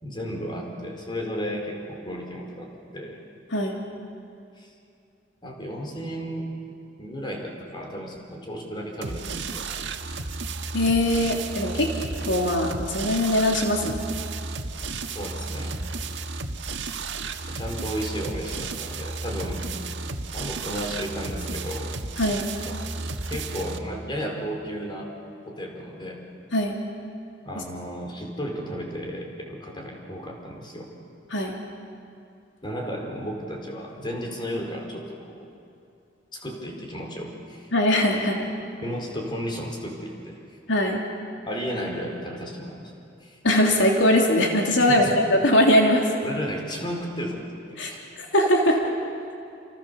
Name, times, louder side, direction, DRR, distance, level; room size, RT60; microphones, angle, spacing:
voice 1, 0.0-3.2 4.6-4.7 5.4-6.5 7.0-9.7 15.1-15.8 17.5-19.6 19.9-20.0 20.3-21.9 22.6-22.8 23.3-25.1 25.5-26.3 27.4-30.9 32.6-35.5 36.3-37.7 38.8-40.4 41.4-42.9 43.2-43.4 44.8-45.1 46.2-47.6 47.9-48.0 48.7-48.8, equal, 25° left, 0 dB, 4.7 m, -33 dB
sound 1, 9.0-23.8, right 3 dB, 75° right, 1.6 m, -33 dB
voice 2, 10.7-11.9 12.2-13.9 22.2-22.4 26.5-26.8 31.3-31.6 37.7-38.5 40.7-41.0 43.4-46.1 47.8-47.9 48.3-48.8, left 1 dB, 85° left, 0 dB, 3.3 m, -21 dB
29.5 x 28.5 x 7.1 m, 2.6 s
head